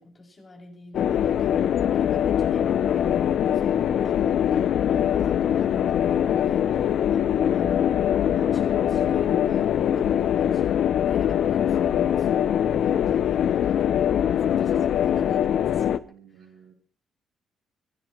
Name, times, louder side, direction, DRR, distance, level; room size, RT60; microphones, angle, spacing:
voice 1, 0.0-10.7 11.1-16.0 16.3-16.5, left 2 dB, 30° left, 0 dB, 7.6 m, -44 dB
sound 1, 0.9-16.0, left 9 dB, 70° left, 0.7 m, -22 dB
voice 2, 6.1-6.8 15.9-16.7, right 8 dB, 85° right, 3 dB, 3.3 m, -53 dB
25.5 x 17.0 x 3.3 m, 0.42 s
cardioid pair, 90°, 0 cm